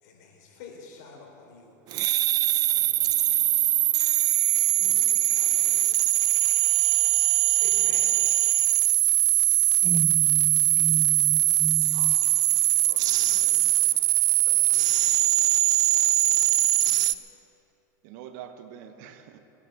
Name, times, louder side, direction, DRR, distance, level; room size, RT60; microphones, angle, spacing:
voice 1, 0.0-1.8 2.7-3.7 4.5-6.0 7.6-8.2 11.9-12.3 12.8-13.8 14.4-15.2, left 4 dB, 65° left, 0 dB, 4.0 m, -49 dB
iphone feedback, 1.9-17.1, right 15 dB, 40° right, 0.5 m, -22 dB
voice 2, 9.8-12.2, right 6 dB, 20° right, 8 dB, 0.9 m, -33 dB
voice 3, 12.8-13.6 16.2-17.2 18.0-19.4, right 9 dB, 60° right, 8 dB, 1.3 m, -47 dB
19.0 x 9.9 x 7.3 m, 3.0 s
supercardioid pair, 125°, 10 cm